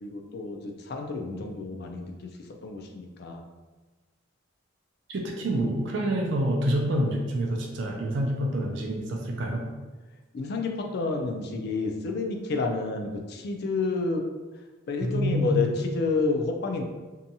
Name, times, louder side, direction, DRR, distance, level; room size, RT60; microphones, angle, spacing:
voice 1, 0.0-2.3 2.6-3.5 10.3-14.3 14.9-16.8, left 3 dB, 50° left, 3 dB, 0.3 m, -30 dB
voice 2, 5.1-9.6 15.0-15.7, right 1 dB, 60° right, 1 dB, 0.4 m, -27 dB
2.7 x 2.2 x 2.6 m, 1.3 s
head